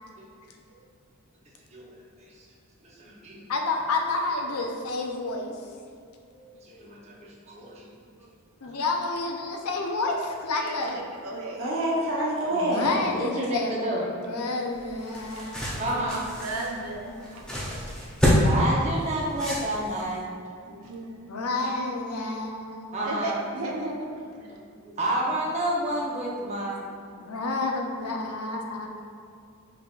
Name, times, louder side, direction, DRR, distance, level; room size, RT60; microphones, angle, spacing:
voice 1, 2.8-3.4 6.6-7.9 8.6-8.7 13.1-14.0 15.8-16.3 18.4-20.2 22.9-23.4 24.5-24.6 24.8-26.9, right 1 dB, 30° right, -4 dB, 0.8 m, -30 dB
voice 2, 3.5-5.6 8.6-11.0 12.5-15.7 21.3-23.0 27.2-28.9, left 3 dB, 85° left, 2 dB, 0.6 m, -30 dB
voice 3, 10.5-11.7 15.4-15.5 15.9-16.0 16.4-17.7 20.7-21.7 23.0-24.1 24.4-24.5, right 2 dB, 80° right, 0 dB, 0.6 m, -36 dB
voice 4, 11.5-12.9, right 1 dB, 60° right, -6 dB, 1.1 m, -26 dB
sound 1, 14.7-20.2, equal, 5° left, 0.6 m, -27 dB
5.6 x 3.6 x 2.4 m, 2.4 s
head